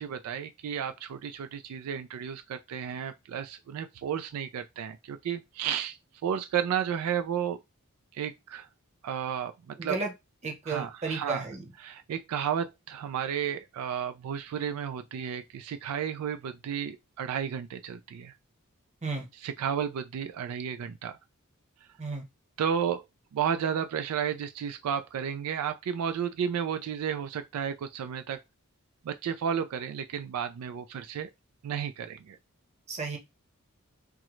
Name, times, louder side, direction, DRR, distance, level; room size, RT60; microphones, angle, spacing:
voice 1, 0.0-7.6 8.1-8.7 9.0-10.0 10.7-11.5 11.8-18.3 19.4-21.2 22.6-23.0 23.3-28.4 29.0-31.3 31.6-32.4, right 8 dB, 85° right, 0.3 m, -32 dB
voice 2, 9.8-10.1 10.4-11.6 19.0-19.3 22.0-22.2 32.9-33.2, right 4 dB, 30° right, 0.8 m, -33 dB
3.6 x 2.1 x 3.0 m
head